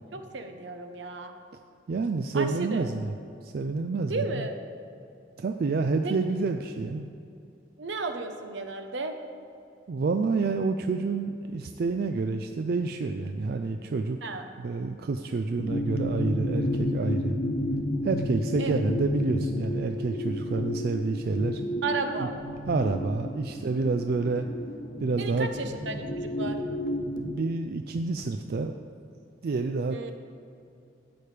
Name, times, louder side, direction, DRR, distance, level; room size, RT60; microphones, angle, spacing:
voice 1, 0.0-1.3 2.3-2.9 4.1-4.6 6.0-6.4 7.8-9.2 14.2-14.5 18.6-18.8 21.8-22.3 25.2-26.6 29.9-30.1, right 3 dB, 75° right, 6 dB, 0.8 m, -34 dB
voice 2, 1.9-3.1 3.4-4.4 5.4-7.1 9.9-14.2 14.6-17.4 18.0-21.6 22.7-24.5 25.0-25.5 27.2-28.7 29.4-30.1, right 3 dB, 55° right, 6 dB, 0.4 m, -28 dB
sound 1, 15.6-27.3, left 1 dB, 50° left, 0.7 m, -31 dB
13.0 x 8.4 x 3.3 m, 2.7 s
head